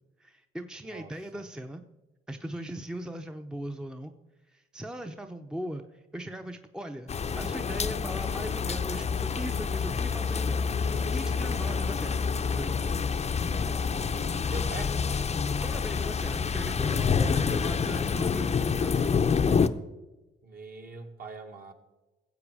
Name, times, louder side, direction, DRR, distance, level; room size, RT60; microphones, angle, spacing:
voice 1, 0.2-1.8 2.3-4.1 4.5-12.2 12.6-12.8 15.6-19.2, right 1 dB, 5° right, 6 dB, 0.7 m, -39 dB
voice 2, 0.8-1.4 14.1-15.0 20.4-21.7, right 4 dB, 50° right, 3 dB, 1.8 m, -43 dB
sound 1, 7.1-19.7, left 5 dB, 35° left, 0.6 m, -28 dB
15.0 x 7.8 x 4.9 m, 1.1 s
cardioid pair, 90°, 20 cm